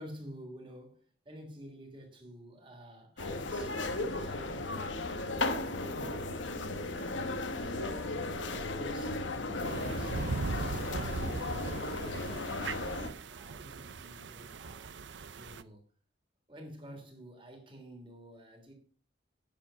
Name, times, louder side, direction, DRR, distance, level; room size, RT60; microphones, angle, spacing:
voice 1, 0.0-3.8 4.1-8.1 8.5-10.4 10.9-14.9 15.4-15.8 16.5-18.7, equal, 25° right, 3.2 m, -51 dB
sound 1, 3.2-13.1, left 2 dB, 80° left, 1.2 m, -35 dB
sound 2, 9.6-15.6, right 3 dB, 70° right, 0.6 m, -39 dB
10.5 x 7.3 x 5.8 m
head